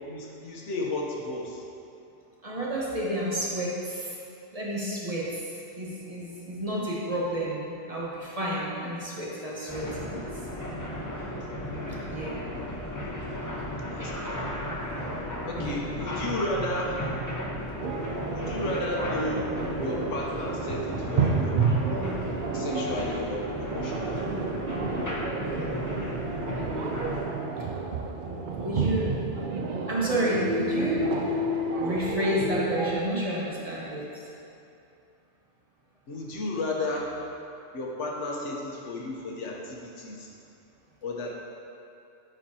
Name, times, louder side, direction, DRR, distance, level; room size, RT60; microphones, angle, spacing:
voice 1, 0.1-1.6 13.9-14.4 15.4-17.0 18.3-19.5 19.8-21.6 22.5-24.3 36.1-37.1 37.7-40.3 41.0-41.3, left 1 dB, 80° left, -2 dB, 1.3 m, -33 dB
voice 2, 2.4-4.2 4.5-5.3 5.7-10.3 12.1-12.4 15.6-15.8 28.6-29.1 29.9-31.0 31.7-34.1, right 1 dB, 30° right, -6 dB, 1.2 m, -30 dB
sound 1, 9.7-27.2, equal, 20° left, 0.8 m, -35 dB
sound 2, 17.8-33.0, right 3 dB, 55° right, 0.6 m, -30 dB
11.0 x 4.4 x 2.8 m, 2.7 s
omnidirectional pair, 1.2 m